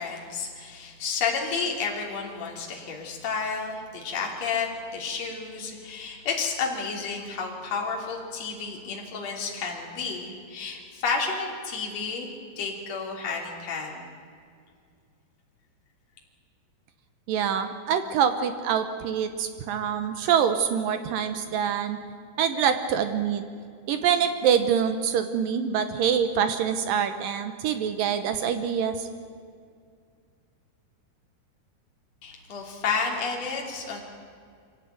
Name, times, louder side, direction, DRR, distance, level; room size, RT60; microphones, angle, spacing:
voice 1, 0.0-14.0 32.2-34.0, left 5 dB, 45° left, 0 dB, 4.0 m, -31 dB
voice 2, 17.3-22.0 22.4-23.4 23.9-29.1, right 8 dB, 70° right, 9 dB, 2.3 m, -25 dB
24.5 x 16.5 x 9.4 m, 2.2 s
omnidirectional pair, 4.7 m